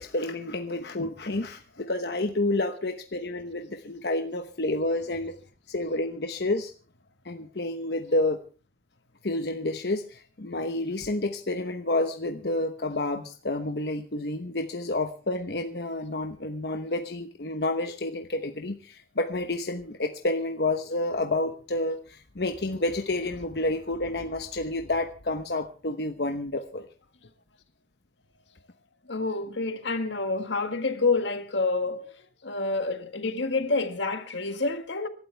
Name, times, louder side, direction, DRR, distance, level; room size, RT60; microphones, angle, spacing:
voice 1, 0.0-5.3 5.7-6.7 7.2-8.4 9.2-26.9, left 2 dB, 65° left, 1.0 m, -29 dB
voice 2, 29.1-35.1, left 3 dB, 85° left, 1.8 m, -28 dB
26.5 x 12.5 x 3.4 m
head